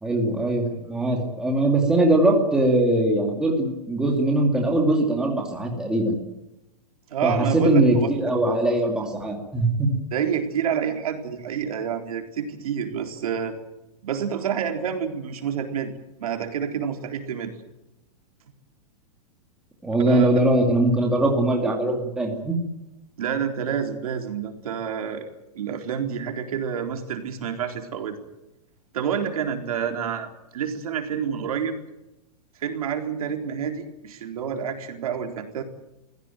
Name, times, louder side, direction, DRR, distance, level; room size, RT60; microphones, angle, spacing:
voice 1, 0.0-6.2 7.2-9.9 19.8-22.6, right 1 dB, 5° right, 0 dB, 2.3 m, -21 dB
voice 2, 7.1-8.1 10.1-13.6 14.0-15.9 16.2-17.5 20.1-20.3 23.2-28.2 28.9-31.8 32.6-35.6, right 7 dB, 65° right, 5 dB, 4.0 m, -28 dB
24.0 x 16.5 x 9.1 m, 0.96 s
supercardioid pair, 180°, 20 cm